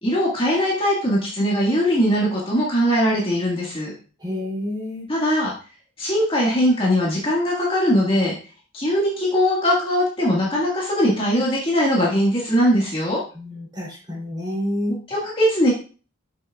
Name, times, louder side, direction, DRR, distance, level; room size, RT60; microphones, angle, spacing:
voice 1, 0.0-3.9 5.1-5.5 6.0-8.3 8.7-13.2 15.1-15.7, equal, 25° left, -4 dB, 1.7 m, -20 dB
voice 2, 4.2-5.1 13.3-14.9, left 1 dB, 20° right, -4 dB, 3.2 m, -28 dB
8.7 x 6.4 x 2.4 m, 0.37 s
head